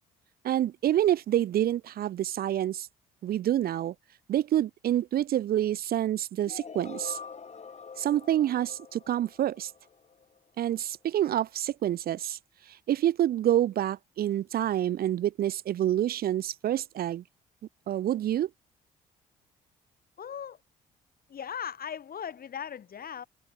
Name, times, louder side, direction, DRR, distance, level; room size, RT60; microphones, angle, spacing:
voice 1, 0.4-2.9 3.2-3.9 4.3-7.2 8.0-9.7 10.6-12.4 12.9-17.2 17.9-18.5, right 12 dB, 55° right, 0.6 m, -27 dB
sound 1, 6.5-10.4, left 5 dB, 35° left, 2.5 m, -45 dB
voice 2, 20.2-20.6 21.3-23.2, left 8 dB, 55° left, 6.4 m, -38 dB
open air
hypercardioid pair, 55°, 18 cm